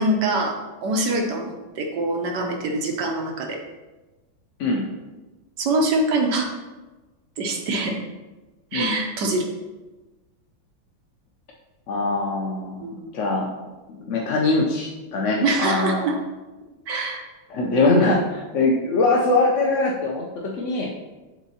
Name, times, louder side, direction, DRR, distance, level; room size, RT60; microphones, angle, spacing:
voice 1, 0.0-3.6 5.6-6.5 7.4-8.0 8.7-9.5 12.8-13.1 15.4-16.1 16.9-17.2, right 2 dB, 70° right, 2 dB, 1.4 m, -24 dB
voice 2, 11.9-12.8 13.1-13.5 13.9-16.1 17.5-20.9, left 2 dB, 65° left, -1 dB, 0.7 m, -22 dB
10.5 x 4.0 x 2.8 m, 1.1 s
omnidirectional pair, 2.1 m